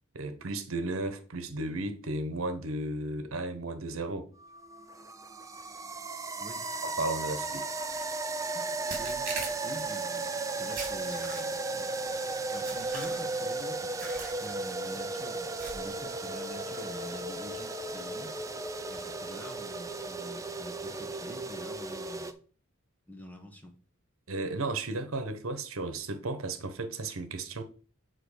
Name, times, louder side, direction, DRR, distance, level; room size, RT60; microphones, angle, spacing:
voice 1, 0.1-4.3 7.0-7.6 24.3-27.6, right 2 dB, 80° right, 1.0 m, -34 dB
sound 1, 4.4-22.3, right 3 dB, 15° right, 0.5 m, -35 dB
sound 2, 7.9-8.1 8.9-9.9 10.8-11.7 12.7-13.4 14.0-14.4 14.7-15.0 15.6-16.0, right 4 dB, 40° right, 2.1 m, -41 dB
voice 2, 8.5-11.9 12.5-18.4 18.9-22.3 23.1-23.8, left 1 dB, 10° left, 1.2 m, -47 dB
7.6 x 3.9 x 6.5 m
head